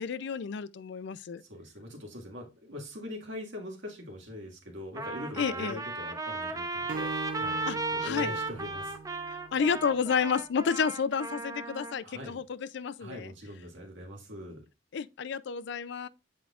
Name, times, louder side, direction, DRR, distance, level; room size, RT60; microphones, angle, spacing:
voice 1, 0.0-1.4 5.3-5.8 7.7-8.4 9.5-13.3 14.9-16.1, left 6 dB, 70° left, 0.4 m, -31 dB
voice 2, 1.4-9.0 12.0-12.4 13.0-14.6, left 1 dB, 80° right, 2.1 m, -42 dB
Trumpet, 5.0-12.0, right 3 dB, 20° right, 0.7 m, -35 dB
Acoustic guitar, 6.9-10.2, right 4 dB, 50° right, 0.3 m, -41 dB
8.0 x 4.9 x 2.4 m
head